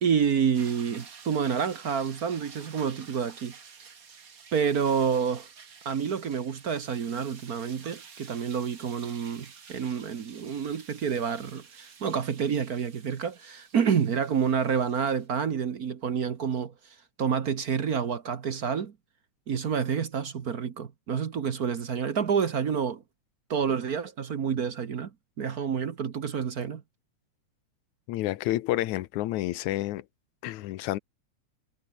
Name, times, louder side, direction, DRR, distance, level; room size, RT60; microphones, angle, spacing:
voice 1, 0.0-3.5 4.5-5.5 5.8-16.7 17.2-18.9 19.5-23.0 23.5-25.1 25.4-26.8, right 7 dB, 55° right, 1.0 m, -28 dB
sound 1, 0.5-15.3, right 6 dB, 35° right, 1.6 m, -50 dB
voice 2, 28.1-30.0 30.4-31.0, left 15 dB, 85° left, 2.2 m, -29 dB
omnidirectional pair, 3.4 m